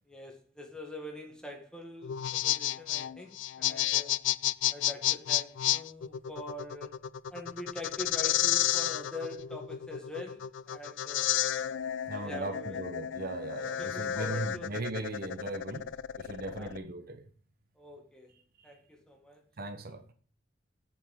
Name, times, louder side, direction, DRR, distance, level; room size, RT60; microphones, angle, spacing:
voice 1, 0.0-4.2 4.7-7.0 7.3-11.4 12.1-12.8 13.8-14.7 16.5-16.7 17.7-18.3 18.6-19.4, left 1 dB, 5° left, 1.7 m, -44 dB
sound 1, 2.0-16.8, left 12 dB, 85° left, 0.3 m, -31 dB
voice 2, 12.1-15.9 16.2-17.2 19.6-20.0, right 2 dB, 55° right, 0.9 m, -38 dB
8.0 x 7.1 x 4.8 m
head